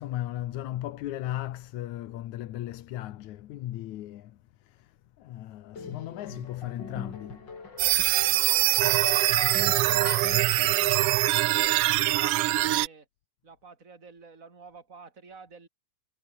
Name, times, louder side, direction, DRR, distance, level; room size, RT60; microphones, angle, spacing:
voice 1, 0.0-7.6, left 14 dB, 85° left, 2.5 m, -37 dB
sound 1, 5.8-11.3, left 4 dB, 40° left, 3.9 m, -40 dB
sound 2, 7.8-12.9, right 16 dB, 80° right, 1.3 m, -23 dB
voice 2, 8.8-13.1 13.4-15.7, right 4 dB, 25° right, 4.2 m, -49 dB
omnidirectional pair, 3.3 m